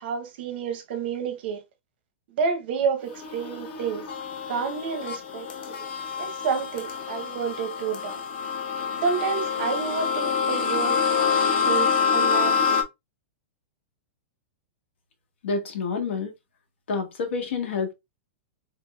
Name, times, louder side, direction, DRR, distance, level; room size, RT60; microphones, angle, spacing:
voice 1, 0.0-1.6 2.4-4.1 4.5-5.8 6.2-8.2 9.0-11.4 11.7-12.8, right 6 dB, 55° right, 0.8 m, -29 dB
sound 1, 3.1-12.8, left 6 dB, 55° left, 0.7 m, -26 dB
voice 2, 15.4-16.3 16.9-17.9, left 4 dB, 80° left, 1.0 m, -28 dB
3.4 x 2.9 x 2.3 m
supercardioid pair, 155°, 6 cm